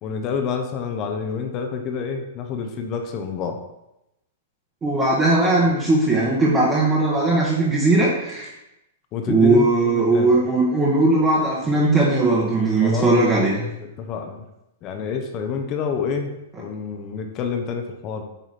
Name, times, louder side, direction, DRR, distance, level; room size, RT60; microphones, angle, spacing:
voice 1, 0.0-3.6 9.1-10.4 12.8-13.1 13.5-14.4 14.8-16.3 16.6-18.2, left 6 dB, 35° left, 5 dB, 0.8 m, -28 dB
voice 2, 4.8-8.5 9.3-13.7, right 2 dB, 20° right, -6 dB, 1.3 m, -18 dB
9.0 x 3.0 x 4.2 m, 0.90 s
hypercardioid pair, 125°, 0 cm